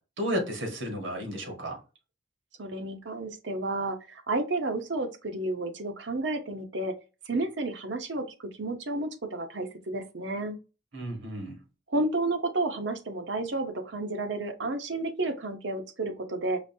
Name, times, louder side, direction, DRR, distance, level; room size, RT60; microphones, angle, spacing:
voice 1, 0.2-1.8 10.9-11.5, equal, 85° right, 1.6 m, -32 dB
voice 2, 2.6-6.9 7.3-8.2 8.6-10.6 11.9-16.6, right 2 dB, 70° right, 0.8 m, -31 dB
5.0 x 2.5 x 2.7 m
head